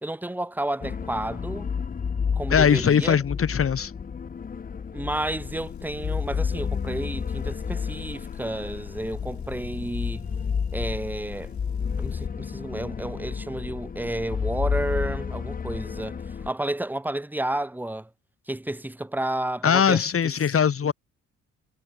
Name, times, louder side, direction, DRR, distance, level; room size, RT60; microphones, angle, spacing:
voice 1, 0.0-1.7 2.3-3.2 4.9-10.3 10.7-11.5 12.0-18.1 18.5-20.3 20.8-20.9, right 1 dB, 5° right, 1.5 m, -31 dB
sound 1, 0.8-16.5, left 6 dB, 30° left, 0.8 m, -31 dB
voice 2, 2.5-3.9 19.6-20.9, left 7 dB, 45° left, 3.1 m, -21 dB
Motor vehicle (road) / Engine, 5.4-12.3, left 11 dB, 65° left, 3.3 m, -42 dB
cardioid pair, 90°, 30 cm